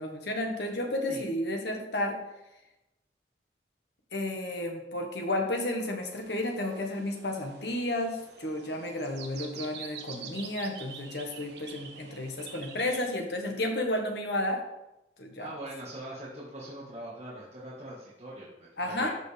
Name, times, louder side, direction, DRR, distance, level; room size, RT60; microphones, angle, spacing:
voice 1, 0.0-2.2 4.1-14.6 15.2-15.5 18.8-19.1, left 1 dB, 70° left, 2 dB, 1.5 m, -32 dB
sound 1, 6.0-13.2, right 6 dB, 70° right, 1.1 m, -47 dB
voice 2, 15.4-19.1, right 1 dB, 35° right, -7 dB, 1.6 m, -42 dB
13.0 x 5.3 x 3.4 m, 0.94 s
head